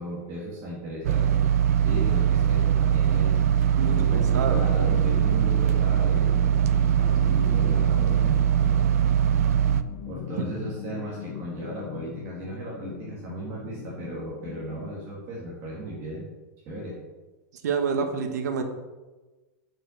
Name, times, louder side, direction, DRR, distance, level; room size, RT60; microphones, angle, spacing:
voice 1, 0.0-1.4 1.8-8.9 10.1-16.2 16.6-17.0, right 1 dB, 30° right, -5 dB, 2.6 m, -36 dB
sound 1, 1.0-9.8, right 9 dB, 65° right, 0.5 m, -21 dB
sound 2, 3.0-15.1, left 10 dB, 35° left, 0.6 m, -40 dB
voice 2, 3.8-4.6 17.6-18.6, right 5 dB, 85° right, 5 dB, 1.5 m, -28 dB
7.0 x 6.7 x 6.7 m, 1.2 s
supercardioid pair, 170°, 9 cm